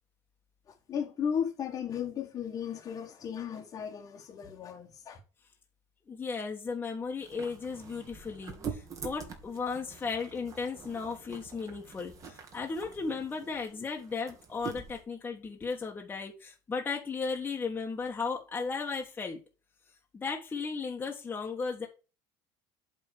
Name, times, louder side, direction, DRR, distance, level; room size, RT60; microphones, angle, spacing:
voice 1, 0.7-5.2, left 8 dB, 40° left, 1.5 m, -35 dB
voice 2, 6.1-19.4 20.1-21.9, left 4 dB, 20° left, 1.4 m, -35 dB
sound 1, 7.2-15.0, right 6 dB, 35° right, 2.2 m, -45 dB
8.1 x 3.7 x 6.4 m
cardioid pair, 125°, 9 cm